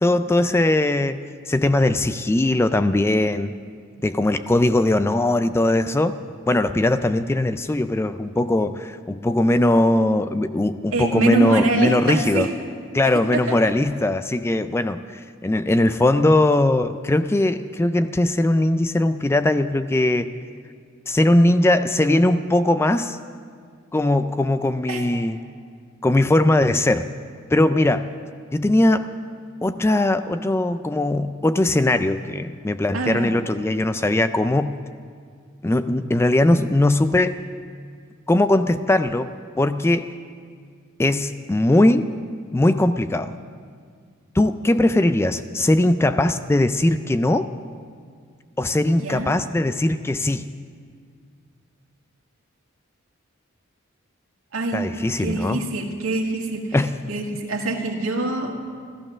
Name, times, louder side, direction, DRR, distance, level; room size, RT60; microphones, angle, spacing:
voice 1, 0.0-3.5 4.0-6.2 6.5-12.5 12.9-20.3 21.1-23.2 23.9-25.4 26.0-27.1 27.5-28.1 28.5-29.1 29.6-34.8 35.6-37.4 38.3-40.1 41.0-42.2 42.5-43.3 44.4-47.5 48.6-50.5 54.7-55.7 56.7-57.0, left 1 dB, 10° left, 11 dB, 0.3 m, -20 dB
voice 2, 10.9-12.5 13.5-13.7 24.9-25.0 32.9-33.3 49.0-49.3 54.5-54.8 55.2-56.8 57.1-58.5, right 2 dB, 80° right, 1 dB, 1.9 m, -24 dB
14.5 x 14.5 x 6.3 m, 2.1 s
head